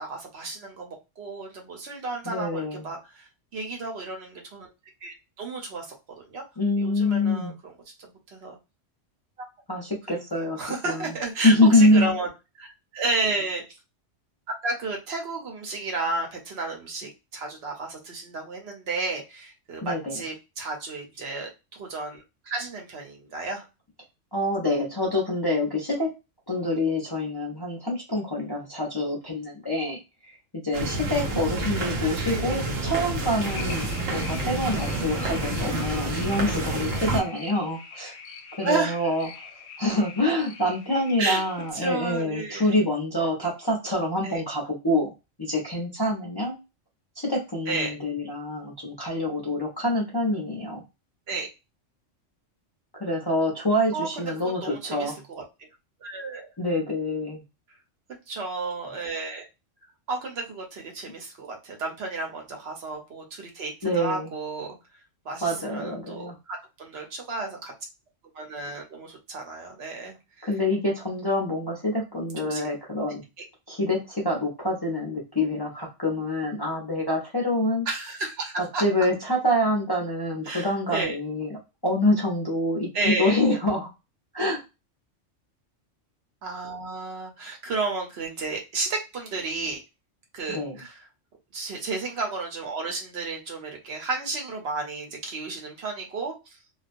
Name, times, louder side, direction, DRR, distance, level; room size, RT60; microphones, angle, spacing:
voice 1, 0.0-3.3 3.5-4.7 5.0-6.4 6.8-7.5 8.0-8.6 10.3-12.3 12.6-12.7 12.9-13.6 14.6-23.6 32.3-32.8 38.6-39.0 41.2-41.4 41.7-42.8 44.2-44.4 47.7-47.9 51.3-51.5 53.9-55.4 56.0-56.5 58.3-59.4 60.1-64.7 65.2-67.7 68.3-70.5 72.4-72.6 77.9-78.8 80.4-81.2 82.9-83.4 86.4-89.8 90.3-91.0 91.5-96.3, right 3 dB, 60° right, 2 dB, 0.9 m, -32 dB
voice 2, 2.3-2.9 6.6-7.6 9.7-10.6 10.8-11.1 11.4-12.2 19.8-20.2 24.3-26.1 26.5-30.0 30.3-30.4 30.6-38.2 38.6-39.3 39.8-45.1 45.4-46.6 47.2-50.8 53.0-55.2 56.6-57.4 63.8-64.3 65.4-66.4 70.4-73.2 73.7-77.9 78.6-83.9 84.3-84.6 90.5-90.8, left 1 dB, 30° left, -3 dB, 0.5 m, -26 dB
sound 1, 30.7-37.2, right 2 dB, 90° right, 1.1 m, -29 dB
sound 2, 33.4-41.7, left 6 dB, 65° left, 0.8 m, -43 dB
2.4 x 2.2 x 2.5 m, 0.26 s
omnidirectional pair, 1.3 m